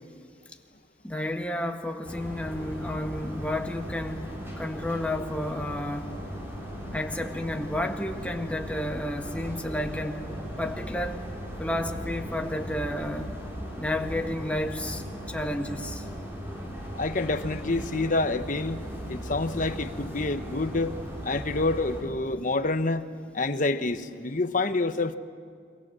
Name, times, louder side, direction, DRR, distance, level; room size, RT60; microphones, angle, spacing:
voice 1, 1.0-6.2 6.9-11.2 11.6-13.3 13.8-16.0, left 1 dB, 5° left, 1.6 m, -31 dB
sound 1, 2.0-22.0, equal, 15° right, 5.1 m, -38 dB
voice 2, 16.9-18.8 19.1-21.0 21.2-23.0 23.3-25.1, left 2 dB, 45° left, 1.0 m, -27 dB
29.5 x 24.0 x 7.6 m
head